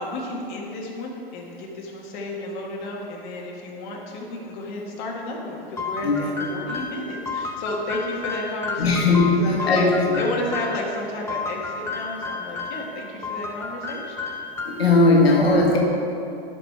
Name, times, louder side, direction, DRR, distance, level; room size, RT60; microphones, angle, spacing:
voice 1, 0.0-9.9 10.2-14.3, left 2 dB, 50° left, -1 dB, 1.6 m, -32 dB
sound 1, 5.8-10.8 11.3-12.9 13.2-15.0, left 4 dB, 10° left, 0.7 m, -31 dB
voice 2, 8.8-9.3 9.6-10.2 14.6-15.8, left 3 dB, 80° left, -1 dB, 1.7 m, -18 dB
11.5 x 5.1 x 3.4 m, 2.7 s
hypercardioid pair, 115°, 30 cm